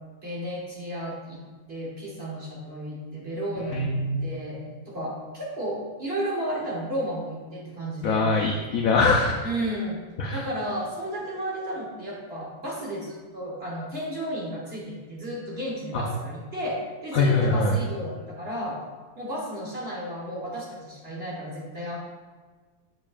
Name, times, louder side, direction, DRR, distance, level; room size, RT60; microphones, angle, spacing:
voice 1, 0.2-1.4 1.7-3.9 4.2-4.6 4.9-8.2 9.4-10.0 10.3-18.8 19.1-22.0, equal, 35° right, -4 dB, 1.2 m, -33 dB
voice 2, 3.7-4.2 8.0-9.5 10.2-10.4 15.9-16.0 17.1-17.8, left 3 dB, 80° left, 1 dB, 0.7 m, -23 dB
7.0 x 6.4 x 2.4 m, 1.4 s
omnidirectional pair, 2.1 m